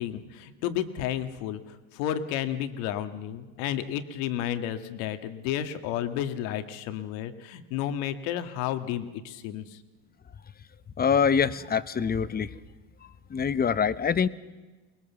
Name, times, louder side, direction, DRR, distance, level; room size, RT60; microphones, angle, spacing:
voice 1, 0.0-9.8, left 10 dB, 80° left, 9 dB, 1.8 m, -32 dB
voice 2, 11.0-12.5 13.3-14.3, left 6 dB, 20° left, 15 dB, 0.9 m, -24 dB
24.0 x 20.5 x 7.1 m, 1.2 s
supercardioid pair, 115°, 41 cm